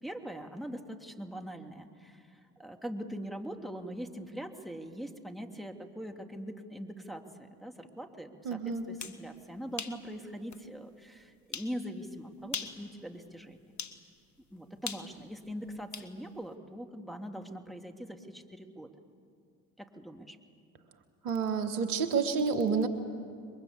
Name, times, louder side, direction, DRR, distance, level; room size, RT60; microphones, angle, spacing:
voice 1, 0.0-13.6 14.5-18.9 19.8-20.4, equal, ahead, 3 dB, 2.7 m, -42 dB
voice 2, 8.4-8.8 21.2-22.9, right 5 dB, 90° right, 9 dB, 1.6 m, -29 dB
sound 1, 8.8-9.2 9.8-10.0 10.5-10.6 11.5-11.7 12.4-12.8 13.8-14.0 14.9-16.1, left 6 dB, 40° left, 1.9 m, -39 dB
28.5 x 22.5 x 8.2 m, 2.3 s
hypercardioid pair, 55°, 43 cm